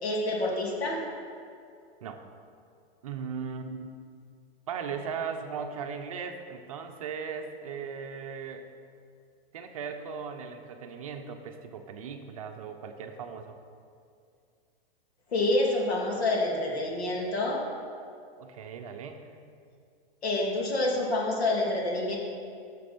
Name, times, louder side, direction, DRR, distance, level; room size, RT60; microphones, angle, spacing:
voice 1, 0.0-1.0 15.3-17.6 20.2-22.2, left 2 dB, 90° left, -2 dB, 2.8 m, -27 dB
voice 2, 3.0-3.9 4.7-8.6 9.5-13.6 18.4-19.3, right 6 dB, 35° right, 5 dB, 0.6 m, -38 dB
12.0 x 6.8 x 5.2 m, 2.4 s
supercardioid pair, 180°, 31 cm